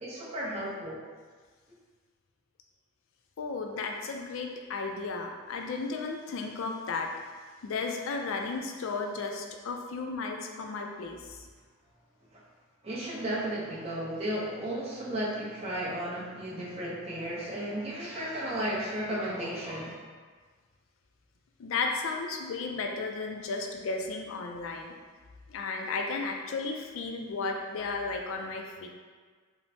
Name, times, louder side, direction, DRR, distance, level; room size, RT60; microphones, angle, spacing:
voice 1, 0.0-1.0 12.3-12.4 12.8-20.0, right 1 dB, 30° right, -7 dB, 0.6 m, -34 dB
voice 2, 3.4-7.1 7.6-11.4 21.6-24.9 25.5-28.9, left 4 dB, 65° left, 2 dB, 0.3 m, -34 dB
3.1 x 2.0 x 2.7 m, 1.5 s
head